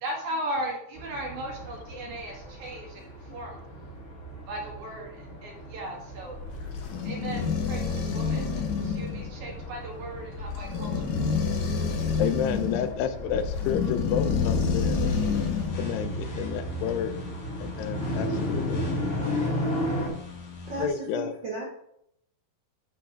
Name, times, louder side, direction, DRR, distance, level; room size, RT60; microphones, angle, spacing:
voice 1, 0.0-3.6 4.5-6.4 7.0-11.1, right 1 dB, 55° right, -1 dB, 2.8 m, -37 dB
sound 1, 0.9-20.1, equal, 25° left, 2.4 m, -36 dB
sound 2, 6.1-15.8, left 5 dB, 65° left, 1.8 m, -28 dB
voice 2, 12.2-15.0 15.7-17.1 17.6-18.9 20.8-21.4, left 8 dB, 80° left, 10 dB, 2.7 m, -30 dB
sound 3, 14.8-20.9, left 3 dB, 45° left, 2.4 m, -40 dB
voice 3, 20.7-21.6, right 2 dB, 85° right, -3 dB, 1.0 m, -34 dB
10.5 x 4.8 x 5.1 m, 0.75 s
omnidirectional pair, 4.8 m